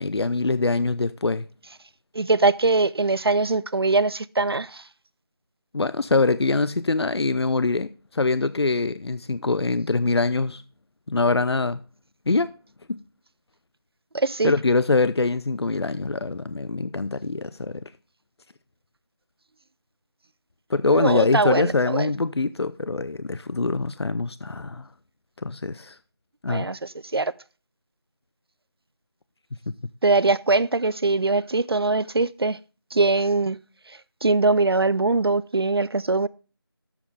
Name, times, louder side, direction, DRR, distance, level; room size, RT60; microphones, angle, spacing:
voice 1, 0.0-1.5 5.7-10.6 11.1-11.8 12.3-12.5 12.9-13.0 14.4-17.8 20.7-24.9 25.4-26.0 26.4-26.7, left 3 dB, 80° left, 0.5 m, -24 dB
voice 2, 2.1-4.8 14.1-14.5 20.9-21.7 26.5-27.3 30.0-32.6 32.9-33.6 34.2-36.3, right 3 dB, 70° right, 0.5 m, -22 dB
12.0 x 7.6 x 3.4 m
figure-of-eight pair, 180°, 13 cm